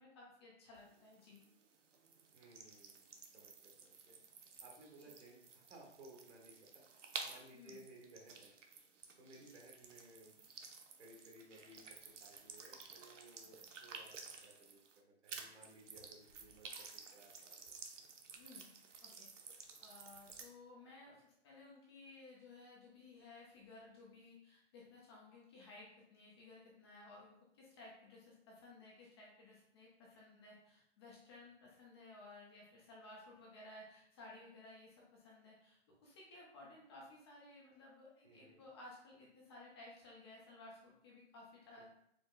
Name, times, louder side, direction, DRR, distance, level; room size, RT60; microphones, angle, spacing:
voice 1, 0.0-1.4 7.5-7.8 9.4-9.6 18.3-18.7 19.0-19.3 19.8-41.8, left 2 dB, 25° left, -4 dB, 0.5 m, -57 dB
sound 1, 0.7-15.0 15.3-20.5, right 5 dB, 90° right, 0.6 m, -53 dB
voice 2, 2.3-4.2 4.6-8.5 9.2-10.4 11.0-14.1 14.4-17.7 38.2-38.6 41.8-41.9, right 1 dB, 65° right, 0 dB, 1.3 m, -60 dB
4.6 x 2.0 x 2.4 m, 0.75 s
hypercardioid pair, 145°, 36 cm